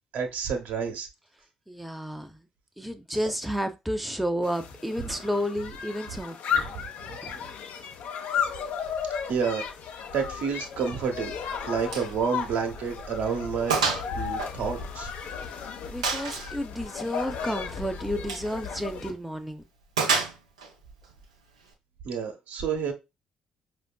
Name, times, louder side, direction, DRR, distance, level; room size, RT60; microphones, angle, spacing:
voice 1, 0.1-1.1 5.0-5.1 6.7-7.5 9.3-9.6 10.1-11.4 11.6-13.8 14.1-15.1 22.0-22.9, right 6 dB, 65° right, 0.9 m, -30 dB
voice 2, 1.7-2.4 2.8-6.7 7.2-7.5 15.5-15.6 15.9-19.6, equal, ahead, 0.6 m, -31 dB
sound 1, 4.4-19.1, left 7 dB, 65° left, 0.7 m, -34 dB
Gunshot gunfire, 11.9-12.1 12.5-12.6 13.0-13.1 13.7-14.1 14.4-15.4 16.0-16.5 18.2-18.5 20.0-20.7, right 5 dB, 85° right, 0.6 m, -27 dB
5.0 x 2.6 x 2.3 m
figure-of-eight pair, 45°, 3 cm